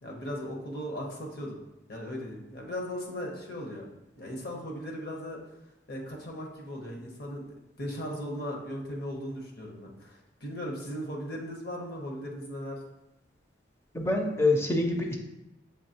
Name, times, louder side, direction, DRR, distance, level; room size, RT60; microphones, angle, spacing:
voice 1, 0.0-1.6 1.9-3.9 4.2-5.4 5.9-12.8, equal, 55° left, 0 dB, 0.9 m, -37 dB
voice 2, 13.9-15.2, left 2 dB, 15° left, 2 dB, 0.5 m, -25 dB
6.6 x 2.8 x 2.8 m, 0.92 s
head